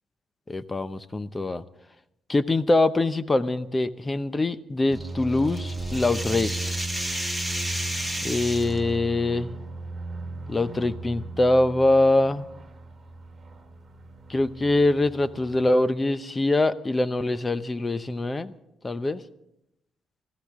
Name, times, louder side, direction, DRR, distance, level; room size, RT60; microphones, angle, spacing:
voice 1, 0.5-1.6 2.3-6.8 8.2-9.5 10.5-12.5 14.3-18.6 18.8-19.2, left 2 dB, 20° left, 13 dB, 0.7 m, -23 dB
sound 1, 4.9-15.6, right 2 dB, 25° right, 2.3 m, -36 dB
sound 2, 5.0-8.8, right 1 dB, 5° left, 1.6 m, -32 dB
25.5 x 15.0 x 3.7 m, 0.83 s
cardioid pair, 120°, 0 cm